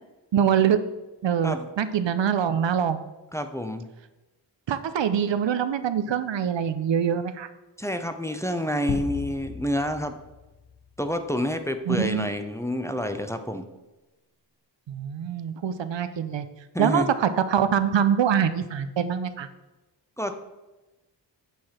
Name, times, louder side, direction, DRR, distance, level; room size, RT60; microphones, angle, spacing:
voice 1, 0.3-0.8 1.2-3.1 4.7-7.5 11.9-12.3 14.9-16.5 16.8-19.5, right 8 dB, 80° right, 11 dB, 0.6 m, -24 dB
voice 2, 3.3-3.9 7.8-10.2 11.0-13.7 16.7-17.1 20.2-20.3, equal, 5° left, 7 dB, 0.6 m, -28 dB
sound 1, 8.9-11.4, left 6 dB, 85° left, 0.8 m, -36 dB
8.2 x 4.8 x 4.3 m, 1.1 s
wide cardioid pair, 60°, 44 cm